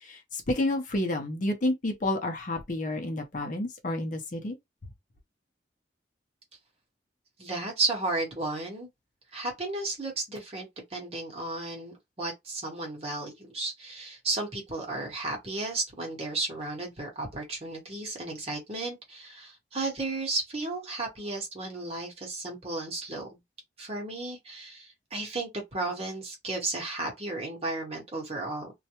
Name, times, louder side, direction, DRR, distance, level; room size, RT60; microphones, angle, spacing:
voice 1, 0.0-4.6, left 1 dB, 45° left, 0.6 m, -30 dB
voice 2, 7.4-8.9 9.3-23.3 23.8-28.7, right 2 dB, 35° right, 1.0 m, -34 dB
2.3 x 2.1 x 2.8 m
head